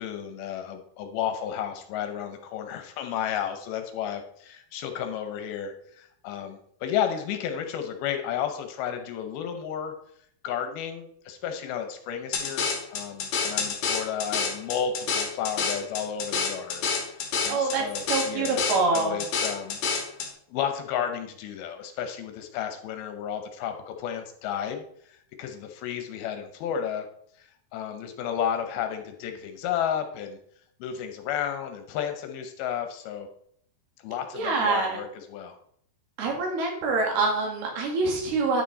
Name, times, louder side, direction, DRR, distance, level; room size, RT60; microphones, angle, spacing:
voice 1, 0.0-9.9 10.4-16.8 17.2-18.7 18.9-19.8 20.5-27.1 27.4-30.4 30.8-33.3 34.0-35.6, left 9 dB, 75° left, 6 dB, 2.5 m, -32 dB
sound 1, 12.3-20.3, left 5 dB, 60° left, 2.0 m, -28 dB
voice 2, 17.5-17.8 18.1-19.2 34.3-35.0 36.2-38.6, right 3 dB, 75° right, 1 dB, 3.8 m, -25 dB
9.6 x 6.1 x 4.1 m, 0.67 s
omnidirectional pair, 4.6 m